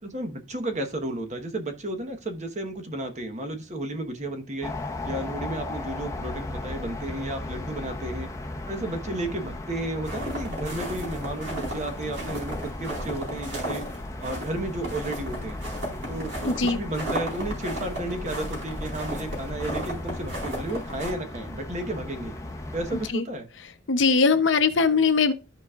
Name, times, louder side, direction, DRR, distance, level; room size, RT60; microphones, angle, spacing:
voice 1, 0.0-4.7 5.0-8.3 8.7-13.8 14.2-15.6 16.1-16.3 16.6-22.3 22.7-23.5, right 1 dB, 40° right, 1.1 m, -33 dB
sound 1, 4.6-23.1, left 2 dB, 15° left, 0.7 m, -36 dB
sound 2, 10.0-21.1, equal, 70° right, 4.4 m, -35 dB
voice 2, 16.4-16.8 23.1-23.2 23.9-25.3, left 4 dB, 75° left, 0.8 m, -20 dB
13.5 x 5.0 x 2.4 m
head